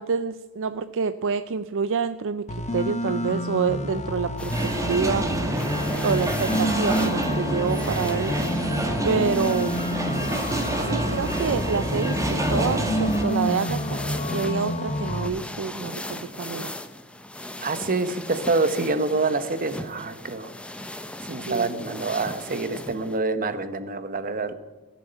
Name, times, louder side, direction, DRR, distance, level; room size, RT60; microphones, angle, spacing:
voice 1, 0.0-4.6 4.9-5.3 6.0-8.4 9.0-9.9 10.8-14.0 14.3-16.8 21.5-21.7, right 5 dB, 60° right, 12 dB, 0.5 m, -27 dB
sound 1, 2.5-15.3, left 1 dB, 30° left, 1.0 m, -29 dB
sound 2, 4.4-23.2, left 1 dB, 5° left, 0.8 m, -38 dB
sound 3, 4.5-13.2, right 1 dB, 15° right, 1.7 m, -28 dB
voice 2, 10.8-11.1 17.6-20.5 21.2-24.5, right 3 dB, 40° right, 11 dB, 1.1 m, -26 dB
15.5 x 7.4 x 8.9 m, 1.2 s
head